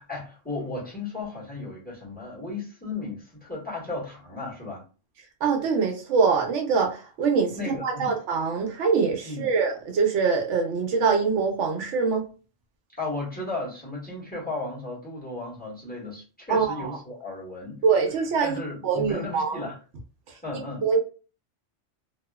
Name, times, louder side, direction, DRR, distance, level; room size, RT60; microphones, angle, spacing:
voice 1, 0.0-4.8 7.5-8.2 9.2-9.5 13.0-17.8 18.4-19.8 20.3-20.9, left 2 dB, 10° left, -7 dB, 1.4 m, -35 dB
voice 2, 5.4-7.5 7.8-12.2 16.5-16.8 17.8-18.6 18.8-19.6 20.8-21.0, right 5 dB, 80° right, 3 dB, 0.9 m, -23 dB
2.8 x 2.4 x 2.2 m, 0.35 s
omnidirectional pair, 1.2 m